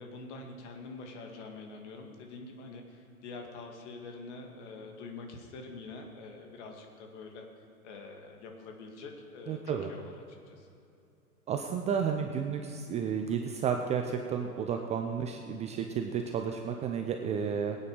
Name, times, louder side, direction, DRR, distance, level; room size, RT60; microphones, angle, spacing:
voice 1, 0.0-7.4 7.8-10.1 10.5-10.7, left 3 dB, 50° left, 2 dB, 2.4 m, -45 dB
voice 2, 9.5-9.9 11.5-17.8, right 7 dB, 15° right, 4 dB, 0.5 m, -32 dB
22.0 x 8.8 x 4.9 m, 2.6 s
figure-of-eight pair, 100°, 44 cm